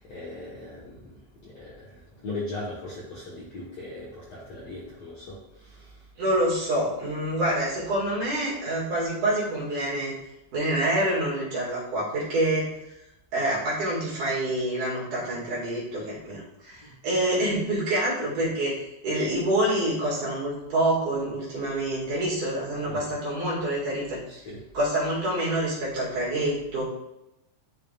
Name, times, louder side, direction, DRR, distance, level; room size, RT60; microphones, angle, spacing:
voice 1, 0.0-5.9 16.8-16.9 22.9-23.0 24.3-24.6, left 2 dB, 60° left, -8 dB, 1.8 m, -39 dB
voice 2, 6.2-10.2 10.5-12.7 13.3-24.2 24.7-26.8, right 1 dB, 55° right, -6 dB, 3.0 m, -27 dB
10.5 x 3.7 x 2.4 m, 0.89 s
omnidirectional pair, 4.8 m